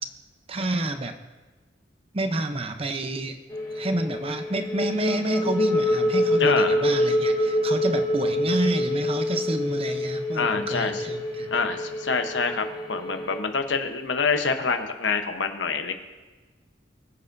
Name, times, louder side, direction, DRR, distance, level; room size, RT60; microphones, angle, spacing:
voice 1, 0.5-1.2 2.1-3.4 3.7-11.5, right 2 dB, 30° right, 7 dB, 0.8 m, -29 dB
sound 1, 3.5-13.4, left 1 dB, 20° left, 0.9 m, -26 dB
voice 2, 6.4-6.8 10.3-11.0 11.5-15.9, left 4 dB, 90° left, 6 dB, 1.0 m, -26 dB
23.5 x 7.9 x 2.7 m, 1.3 s
head